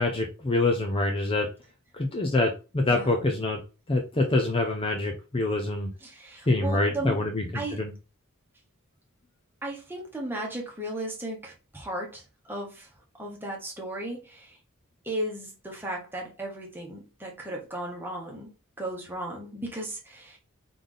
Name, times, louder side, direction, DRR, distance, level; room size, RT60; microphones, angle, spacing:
voice 1, 0.0-1.5 1.9-3.6 3.9-5.9 6.5-7.9, left 2 dB, 25° left, 0.6 m, -25 dB
voice 2, 2.9-3.3 6.0-7.2 7.5-7.8 9.6-12.9 13.2-14.6 15.0-18.5 18.8-20.4, right 1 dB, 10° right, 1.3 m, -35 dB
3.9 x 3.4 x 3.8 m
head